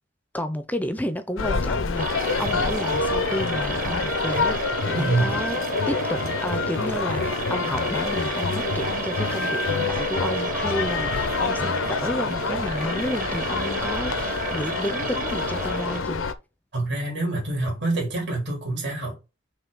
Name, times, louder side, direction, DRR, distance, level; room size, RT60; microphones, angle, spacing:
voice 1, 0.3-4.6 4.8-5.6 5.9-16.3, left 1 dB, 10° left, 0.5 m, -31 dB
sound 1, 1.4-16.3, left 4 dB, 85° left, 0.7 m, -27 dB
sound 2, 2.0-16.0, right 6 dB, 40° right, 0.6 m, -33 dB
voice 2, 4.9-5.4 16.7-19.1, right 2 dB, 60° right, 3.1 m, -26 dB
5.8 x 3.2 x 5.4 m
head